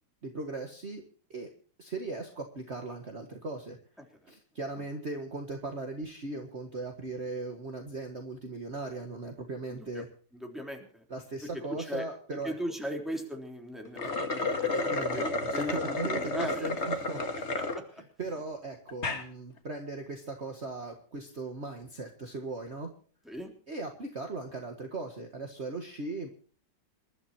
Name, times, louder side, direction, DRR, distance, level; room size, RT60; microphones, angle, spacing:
voice 1, 0.2-1.0 1.3-1.5 1.8-3.8 4.3-10.1 11.1-12.5 14.9-17.5 18.2-22.9 23.7-26.3, right 3 dB, 40° right, 4 dB, 1.9 m, -38 dB
voice 2, 9.7-10.0 10.3-11.1 11.7-12.1 12.4-16.7 17.6-17.8 23.2-23.5, equal, ahead, 2 dB, 3.6 m, -38 dB
sound 1, 13.9-17.8 18.3-18.4 18.9-19.2, left 2 dB, 40° left, 1.9 m, -31 dB
27.5 x 12.5 x 2.9 m, 0.43 s
omnidirectional pair, 1.9 m